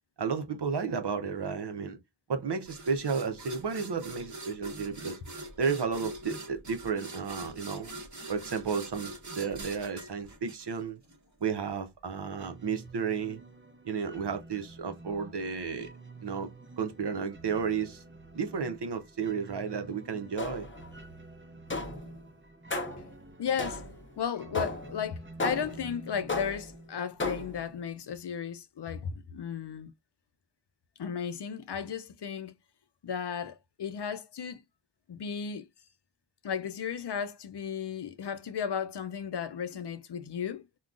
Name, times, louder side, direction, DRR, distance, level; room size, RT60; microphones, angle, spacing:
voice 1, 0.2-2.0 2.3-5.2 5.6-7.9 8.3-11.0 11.4-13.4 13.8-15.9 16.2-16.5 16.8-18.0 18.3-20.7, right 6 dB, 70° right, 0.7 m, -32 dB
sound 1, 2.7-11.2, right 2 dB, 45° right, 1.0 m, -44 dB
sound 2, 12.4-27.9, right 2 dB, 30° right, 0.7 m, -49 dB
sound 3, 20.4-20.9 21.7-22.1 22.7-23.1 23.6-24.1 24.6-25.0 25.4-25.9 26.3-26.8 27.2-27.7, left 2 dB, 30° left, 0.7 m, -34 dB
voice 2, 23.4-23.8 24.2-29.9 31.0-32.5 33.0-34.6 35.1-35.7 36.4-40.6, left 7 dB, 70° left, 0.5 m, -35 dB
3.7 x 2.2 x 2.4 m
wide cardioid pair, 45°, 42 cm